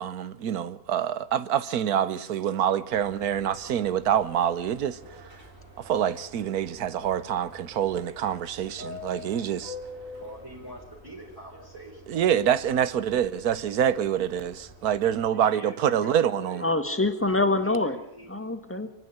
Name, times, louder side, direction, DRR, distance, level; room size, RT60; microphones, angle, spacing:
voice 1, 0.0-5.2 5.8-9.8 12.1-14.5 14.8-16.6, right 9 dB, 70° right, 1.4 m, -26 dB
Subway metro underground, 2.9-15.3, left 2 dB, 40° right, 4.8 m, -47 dB
voice 2, 3.1-3.8 10.2-12.3 15.3-17.1 17.5-18.3, right 1 dB, 15° right, 4.0 m, -45 dB
voice 3, 16.6-18.0 18.3-18.9, left 2 dB, 10° left, 1.5 m, -25 dB
29.0 x 9.7 x 9.4 m
omnidirectional pair, 1.7 m